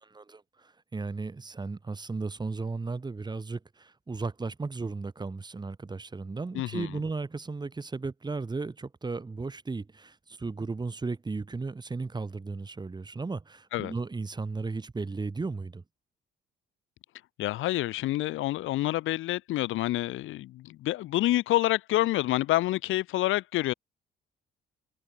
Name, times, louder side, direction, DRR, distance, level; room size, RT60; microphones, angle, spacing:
voice 1, 0.0-15.8, right 3 dB, 20° right, 1.2 m, -35 dB
voice 2, 6.5-6.9 13.7-13.9 17.4-23.7, left 16 dB, 85° left, 0.9 m, -27 dB
cardioid pair, 90°, 20 cm